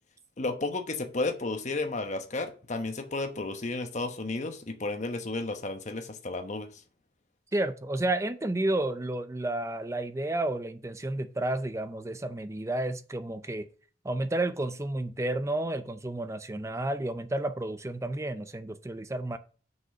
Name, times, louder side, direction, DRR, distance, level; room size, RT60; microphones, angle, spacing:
voice 1, 0.4-6.7, left 2 dB, 40° left, 1.0 m, -32 dB
voice 2, 7.5-13.7 14.0-19.4, right 1 dB, 15° right, 0.5 m, -31 dB
6.4 x 5.4 x 5.3 m
head